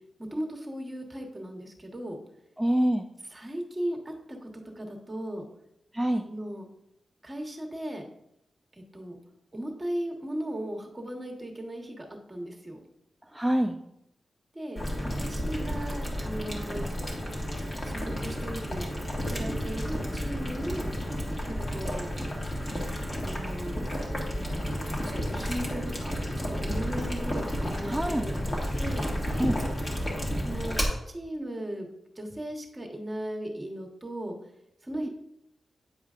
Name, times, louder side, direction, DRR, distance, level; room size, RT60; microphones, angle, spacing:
voice 1, 0.2-2.2 3.3-4.5 4.7-5.4 6.2-6.7 7.2-8.1 8.9-9.2 9.5-12.8 14.5-16.8 17.8-20.9 21.5-22.1 23.2-23.8 24.3-28.4 28.8-29.1 30.4-30.8 31.1-31.9 32.2-34.4 34.8-35.1, right 1 dB, 20° right, 1 dB, 1.2 m, -37 dB
voice 2, 2.6-3.1 5.9-6.2 13.3-13.7 27.8-28.3 29.4-29.6 34.9-35.1, right 1 dB, 5° right, 2 dB, 0.4 m, -26 dB
Boiling, 14.8-30.8, equal, 35° left, 1.5 m, -32 dB
8.9 x 4.9 x 2.5 m, 0.79 s
wide cardioid pair, 90°, 0 cm